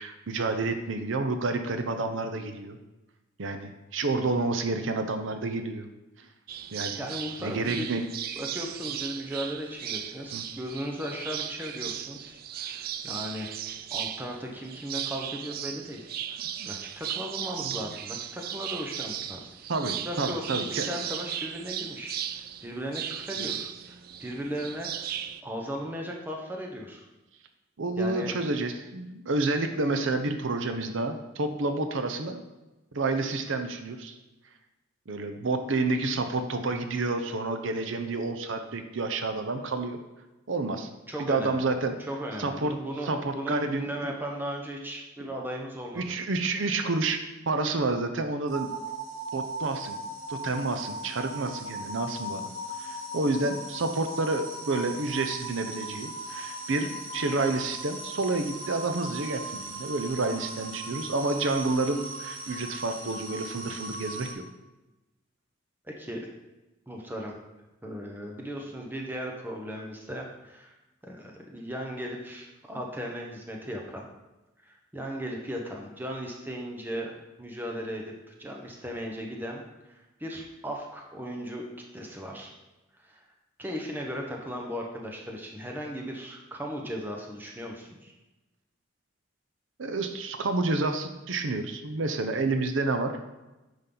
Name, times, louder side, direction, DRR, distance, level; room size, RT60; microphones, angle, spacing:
voice 1, 0.0-2.8 3.4-5.9 6.2-6.3 6.7-7.0 7.4-8.0 10.3-10.4 16.6-16.7 17.6-17.7 19.7-20.9 23.4-23.5 27.8-32.4 32.9-34.2 35.1-40.0 40.5-40.9 41.2-42.0 42.4-42.7 43.0-44.1 45.9-47.2 47.5-48.7 49.3-50.0 50.3-52.4 52.8-64.4 89.8-93.2, right 3 dB, 70° right, 7 dB, 0.7 m, -29 dB
sound 1, 6.5-25.4, right 10 dB, 45° right, 0.3 m, -36 dB
voice 2, 7.0-8.0 8.4-13.5 13.9-19.5 20.0-25.1 25.4-27.0 28.0-28.3 41.1-41.6 42.1-46.1 65.9-66.3 66.9-67.3 67.8-70.7 71.0-74.1 74.6-77.1 77.4-81.7 81.9-82.5 83.0-83.2 83.6-88.1, equal, 10° right, 0 dB, 1.0 m, -37 dB
sound 2, 48.5-64.3, right 1 dB, 85° right, 1.5 m, -38 dB
9.8 x 5.4 x 3.9 m, 1.0 s
head